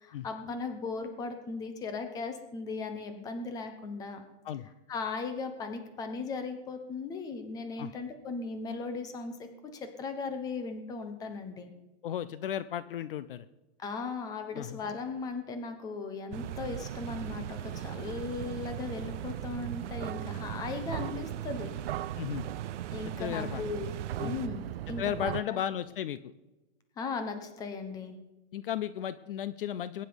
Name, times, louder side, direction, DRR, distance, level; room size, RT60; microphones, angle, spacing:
voice 1, 0.0-4.2 4.9-11.7 13.8-21.7 22.9-23.9 24.2-25.6 27.0-28.2, left 4 dB, 10° left, 7 dB, 1.0 m, -37 dB
voice 2, 12.0-13.4 14.5-14.8 22.2-22.5 23.2-23.6 24.2-24.4 25.0-26.3 28.5-30.0, left 10 dB, 50° left, 15 dB, 0.6 m, -34 dB
sound 1, 16.3-25.4, right 13 dB, 60° right, 0.5 m, -39 dB
sound 2, 16.3-24.5, right 10 dB, 90° right, 0.9 m, -42 dB
21.0 x 10.0 x 5.3 m, 1.1 s
supercardioid pair, 175°, 35 cm